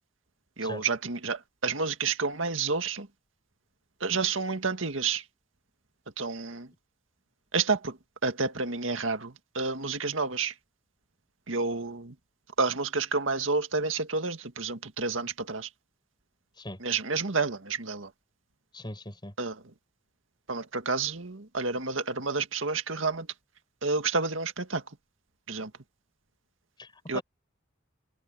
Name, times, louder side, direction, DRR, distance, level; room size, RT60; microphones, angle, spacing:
voice 1, 0.6-3.1 4.0-5.2 6.2-6.7 7.5-10.5 11.5-12.2 12.6-15.7 16.8-18.1 19.4-19.6 20.5-23.3 23.8-24.8 25.5-25.7 27.1-27.2, right 4 dB, 90° right, 2.0 m, -30 dB
voice 2, 18.7-19.3 26.8-27.2, left 1 dB, 25° left, 5.5 m, -40 dB
head